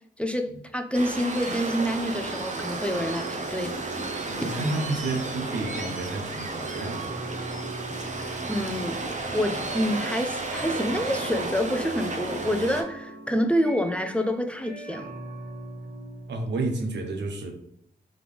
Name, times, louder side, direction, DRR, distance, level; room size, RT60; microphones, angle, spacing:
voice 1, 0.2-3.8 8.5-9.0 9.3-15.1, equal, 5° left, 7 dB, 0.6 m, -27 dB
Waves surf, 0.9-12.8, right 3 dB, 45° right, 0.8 m, -33 dB
sound 1, 1.7-16.6, right 3 dB, 65° right, 1.1 m, -42 dB
voice 2, 4.1-7.0 16.3-17.5, right 2 dB, 90° right, 3 dB, 0.8 m, -30 dB
3.7 x 3.3 x 3.3 m, 0.72 s
cardioid pair, 50°, 17 cm